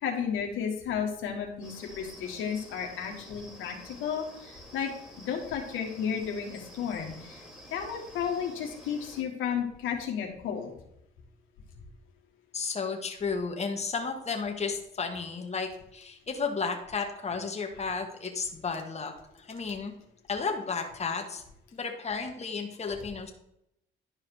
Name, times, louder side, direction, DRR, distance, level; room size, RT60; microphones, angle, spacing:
voice 1, 0.0-4.9 5.3-7.4 7.7-10.7, left 7 dB, 85° left, 1 dB, 1.6 m, -33 dB
sound 1, 1.6-9.2, equal, 5° right, 2.5 m, -50 dB
voice 2, 12.5-19.1 19.4-19.9 20.3-21.4 21.7-23.3, left 5 dB, 35° left, 3 dB, 1.6 m, -33 dB
11.0 x 4.9 x 4.7 m, 0.80 s
cardioid pair, 90°, 20 cm